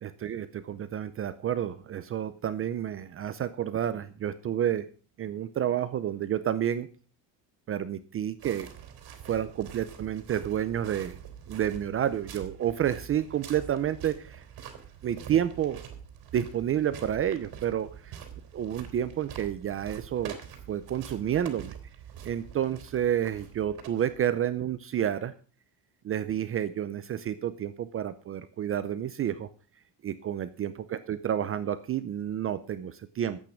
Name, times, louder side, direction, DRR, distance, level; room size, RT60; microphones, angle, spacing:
voice 1, 0.0-4.9 5.2-6.9 7.7-8.7 9.3-11.2 11.5-14.4 15.0-15.8 16.3-18.2 18.5-20.4 20.7-21.7 22.2-25.3 26.0-29.5 30.0-33.4, right 10 dB, 30° right, 12 dB, 0.6 m, -30 dB
sound 1, 8.4-24.4, right 9 dB, 50° right, 3.1 m, -45 dB
14.0 x 8.7 x 6.4 m, 0.39 s
cardioid pair, 175°, 47 cm